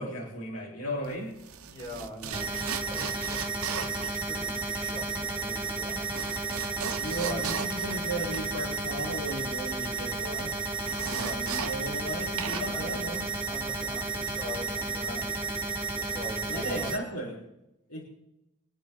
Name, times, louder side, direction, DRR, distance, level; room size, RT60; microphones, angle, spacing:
voice 1, 0.0-1.3 7.0-10.7 11.0-13.3 16.5-17.4 17.9-18.0, equal, 85° left, -6 dB, 4.8 m, -35 dB
sound 1, 1.0-12.1 12.4-13.9, right 7 dB, 70° right, 1.0 m, -39 dB
voice 2, 1.7-3.5 3.8-6.2 7.2-7.5 11.1-11.4 12.5-13.0 13.5-15.4 16.0-17.1, left 1 dB, 20° left, -2 dB, 5.2 m, -43 dB
sound 2, 2.3-17.0, right 3 dB, 15° right, 3.8 m, -32 dB
25.0 x 9.1 x 4.1 m, 0.83 s
head